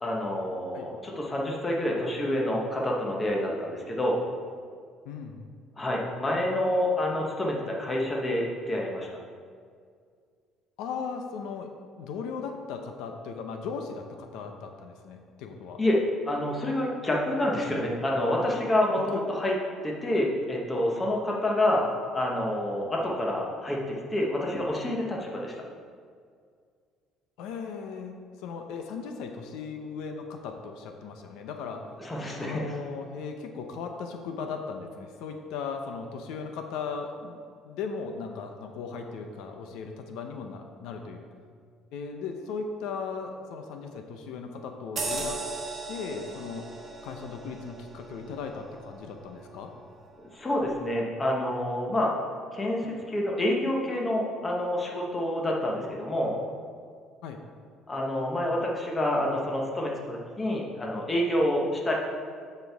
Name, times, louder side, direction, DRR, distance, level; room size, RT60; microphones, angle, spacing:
voice 1, 0.0-4.2 5.8-9.1 15.8-16.0 16.3-19.5 19.8-21.9 22.1-23.8 24.1-25.5 32.0-32.8 50.3-52.1 52.5-56.3 57.9-61.9, left 1 dB, 15° left, -2 dB, 1.0 m, -28 dB
voice 2, 5.1-5.4 10.8-11.7 12.0-15.8 19.1-19.2 27.4-31.8 32.4-41.2 41.9-45.4 45.9-46.8 47.0-49.7 57.2-57.4, left 5 dB, 80° left, 4 dB, 0.7 m, -37 dB
sound 1, 45.0-49.9 50.3-50.5, right 3 dB, 30° right, 1.3 m, -38 dB
13.0 x 4.5 x 3.5 m, 2.1 s
cardioid pair, 170°, 0 cm